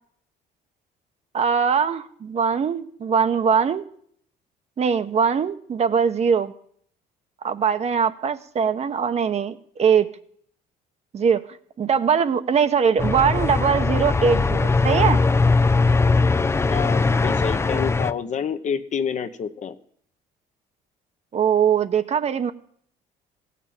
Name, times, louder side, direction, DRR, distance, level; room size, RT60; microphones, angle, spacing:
voice 1, 1.3-3.9 4.8-6.5 7.4-10.1 11.1-11.4 11.8-15.2 21.3-22.5, right 7 dB, 40° right, 10 dB, 1.0 m, -21 dB
sound 1, 13.0-18.1, left 3 dB, 15° left, 0.5 m, -20 dB
voice 2, 16.7-19.8, left 7 dB, 45° left, 10 dB, 1.0 m, -28 dB
16.0 x 6.9 x 8.8 m, 0.62 s
cardioid pair, 110°, 17 cm